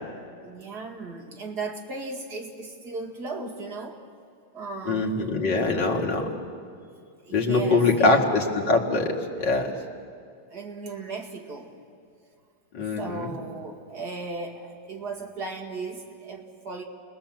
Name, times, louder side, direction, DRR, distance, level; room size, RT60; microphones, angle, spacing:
voice 1, 0.4-4.0 4.5-5.2 7.2-8.2 10.5-11.8 12.8-16.8, right 3 dB, 50° right, 2 dB, 2.5 m, -36 dB
voice 2, 4.9-6.3 7.3-9.7 12.7-13.3, left 3 dB, 60° left, 0 dB, 2.7 m, -23 dB
29.0 x 20.0 x 7.7 m, 2.3 s
omnidirectional pair, 2.2 m